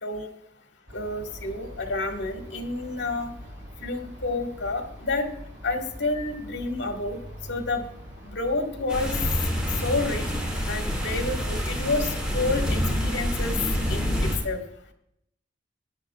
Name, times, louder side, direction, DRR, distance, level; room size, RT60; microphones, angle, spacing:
voice 1, 0.9-3.3 3.8-5.3 5.6-7.2 7.5-7.9 8.2-9.2 9.8-10.2 10.7-13.6 13.9-14.6, left 2 dB, 75° left, 3 dB, 1.8 m, -29 dB
sound 1, 0.9-9.5, equal, 65° right, 3.0 m, -44 dB
sound 2, 8.9-14.4, equal, 5° right, 3.7 m, -27 dB
18.5 x 10.5 x 2.4 m, 0.74 s
head